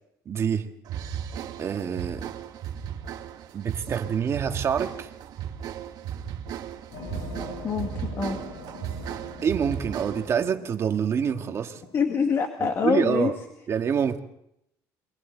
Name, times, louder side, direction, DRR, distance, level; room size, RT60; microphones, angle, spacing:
voice 1, 0.3-0.7 1.6-2.3 3.5-5.1 9.4-11.8 12.8-13.4 13.7-14.2, right 7 dB, 40° right, 5 dB, 1.8 m, -26 dB
sound 1, 0.9-10.4, right 9 dB, 65° right, 1.9 m, -36 dB
sound 2, 6.9-12.4, left 2 dB, 85° left, 7.8 m, -43 dB
voice 2, 7.6-8.4 11.9-13.3, left 6 dB, 40° left, 4 dB, 1.9 m, -25 dB
28.5 x 24.0 x 4.0 m, 0.79 s
cardioid pair, 130°, 7 cm